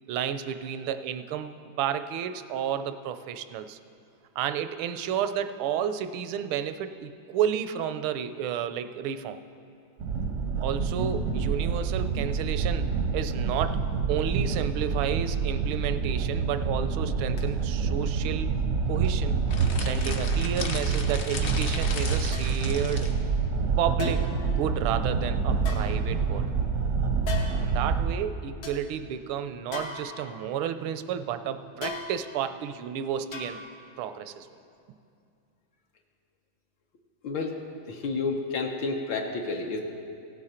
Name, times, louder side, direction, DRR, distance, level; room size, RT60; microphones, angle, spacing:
voice 1, 0.1-3.8 4.4-9.4 10.6-12.9 13.1-13.8 14.1-18.5 18.9-19.4 19.8-23.2 23.8-26.5 27.6-33.6 34.0-34.5, right 9 dB, 85° right, 10 dB, 1.4 m, -31 dB
sound 1, 10.0-28.1, right 5 dB, 65° right, 0.7 m, -27 dB
sound 2, 17.4-17.5 18.0-18.3 19.0-19.1 20.0-20.1 21.1-21.2 22.3-22.7 24.0-24.5 25.6-26.5 27.2-27.8 28.2-28.3 28.6-28.8 29.7-30.6 31.8-32.5 33.3-33.9 34.2-34.3, left 4 dB, 90° left, 2.0 m, -39 dB
sound 3, 19.5-23.1, left 4 dB, 50° left, 0.8 m, -37 dB
voice 2, 37.2-37.6 37.9-39.8, left 3 dB, 70° left, 1 dB, 1.5 m, -30 dB
16.5 x 8.8 x 4.3 m, 2.5 s
omnidirectional pair, 2.2 m